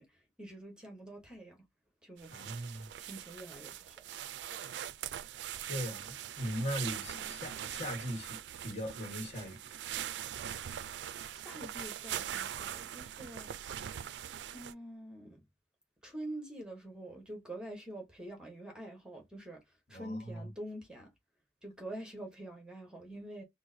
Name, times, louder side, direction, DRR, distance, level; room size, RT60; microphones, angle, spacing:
voice 1, 0.0-1.6 2.0-4.1 7.1-7.3 11.3-13.5 14.5-15.4 16.0-19.6 19.9-21.1 21.6-23.4, right 1 dB, 5° right, 1.1 m, -46 dB
sound 1, 2.2-14.7, right 10 dB, 75° right, 0.3 m, -42 dB
voice 2, 2.3-2.9 5.6-9.7 19.9-20.5, equal, 40° left, 1.4 m, -39 dB
4.6 x 2.1 x 2.7 m
head